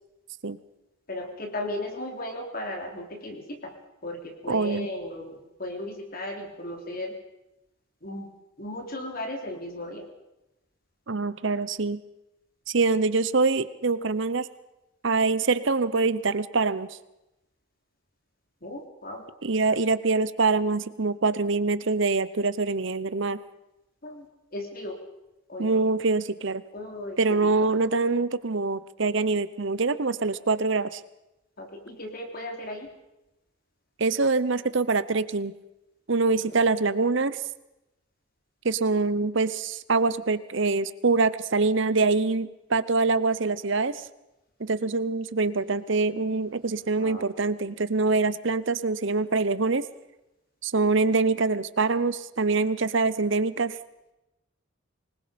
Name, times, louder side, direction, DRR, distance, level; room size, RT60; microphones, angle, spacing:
voice 1, 1.1-3.7 4.0-7.2 8.0-8.3 8.6-10.1 18.6-19.2 24.0-25.0 25.5-25.8 26.7-27.5 31.6-32.9 36.5-36.6 47.0-47.3, left 1 dB, 45° left, 3 dB, 3.4 m, -36 dB
voice 2, 4.5-4.9 11.1-12.0 12.7-14.5 15.0-16.9 19.4-23.4 25.6-26.6 27.2-31.0 34.0-35.5 36.1-37.4 38.6-44.0 44.6-49.8 50.6-53.8, right 3 dB, 60° right, 15 dB, 0.8 m, -24 dB
25.0 x 20.5 x 5.2 m, 0.94 s
head